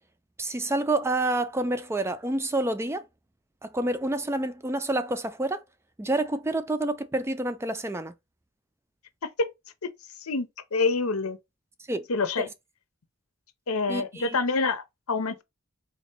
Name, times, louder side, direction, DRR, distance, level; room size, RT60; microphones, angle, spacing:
voice 1, 0.4-3.0 3.6-5.6 6.0-8.1 11.9-12.1 12.4-12.5 13.9-14.4, right 2 dB, 10° right, 0.3 m, -28 dB
voice 2, 10.2-11.4 12.1-12.5 13.7-15.4, left 3 dB, 90° left, 0.8 m, -27 dB
4.0 x 2.9 x 4.4 m
head